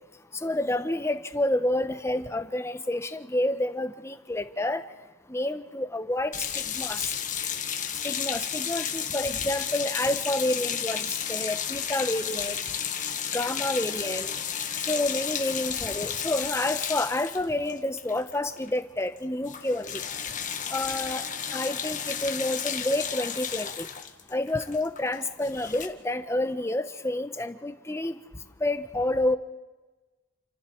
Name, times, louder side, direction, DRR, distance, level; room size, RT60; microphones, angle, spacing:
voice 1, 0.4-4.8 5.3-6.3 6.8-7.1 8.0-12.6 13.3-14.4 14.9-20.0 20.7-21.2 21.5-23.9 24.3-28.2 28.6-29.4, left 1 dB, 15° left, 10 dB, 1.0 m, -29 dB
sound 1, 6.3-18.7 19.0-19.2 19.4-25.9, left 8 dB, 40° left, 1.7 m, -32 dB
29.0 x 29.0 x 4.6 m, 1.2 s
head